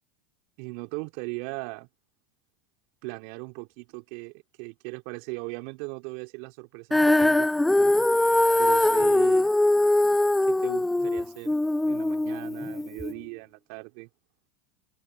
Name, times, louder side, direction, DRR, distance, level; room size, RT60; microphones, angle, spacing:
voice 1, 0.6-1.9 3.0-4.3 4.6-7.5 8.6-9.5 10.5-11.6 11.9-14.1, right 29 dB, 65° right, 3.5 m, -38 dB
Female singing, 6.9-13.1, left 2 dB, 5° left, 0.3 m, -22 dB
hypercardioid pair, 95°, 0 cm